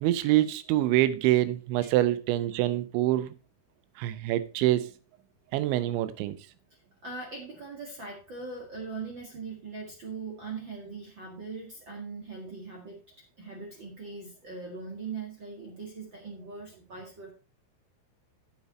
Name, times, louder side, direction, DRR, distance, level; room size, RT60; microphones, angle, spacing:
voice 1, 0.0-3.3 4.0-4.9 5.5-6.4, right 14 dB, 80° right, 3.1 m, -25 dB
voice 2, 7.0-13.0 13.4-17.3, right 4 dB, 45° right, 1.5 m, -40 dB
8.8 x 8.0 x 4.2 m
omnidirectional pair, 5.4 m